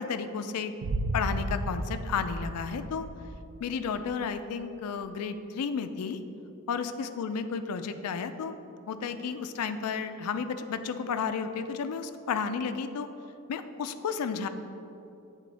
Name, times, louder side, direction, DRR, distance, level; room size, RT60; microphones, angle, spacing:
voice 1, 0.0-3.1 3.6-6.2 6.7-8.5 8.9-13.1 13.5-14.5, left 6 dB, 85° left, 10 dB, 0.4 m, -32 dB
sound 1, 0.8-3.8, right 1 dB, 80° right, 0.4 m, -33 dB
8.3 x 3.7 x 4.1 m, 2.8 s
head